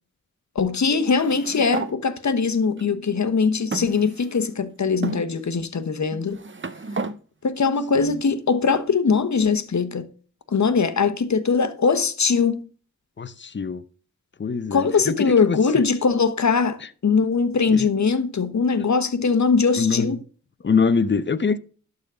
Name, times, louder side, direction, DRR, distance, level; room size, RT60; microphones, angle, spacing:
voice 1, 0.5-6.4 7.4-10.1 10.5-12.6 14.7-20.2, left 5 dB, 55° left, 1.2 m, -21 dB
sound 1, 1.1-1.9 2.8-2.9 3.7-4.5 5.0-5.2 6.1-7.2, right 4 dB, 35° right, 0.9 m, -32 dB
voice 2, 13.2-13.8 14.4-15.8 17.7-17.8 19.8-20.2 20.6-21.6, left 5 dB, 35° left, 0.7 m, -23 dB
12.0 x 4.1 x 5.0 m
cardioid pair, 40°, 34 cm